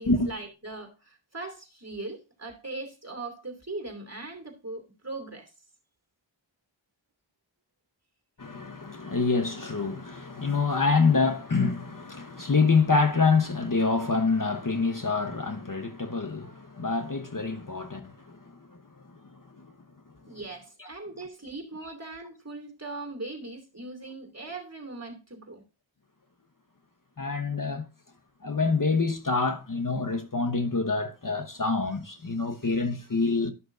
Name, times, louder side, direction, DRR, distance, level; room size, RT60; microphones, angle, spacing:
voice 1, 0.0-5.5 20.3-25.6, right 2 dB, 35° right, 2.7 m, -40 dB
voice 2, 8.4-19.7 20.8-20.9 27.2-27.9 28.4-33.5, left 4 dB, 45° left, 1.0 m, -26 dB
12.5 x 6.1 x 2.6 m
wide cardioid pair, 50°, 47 cm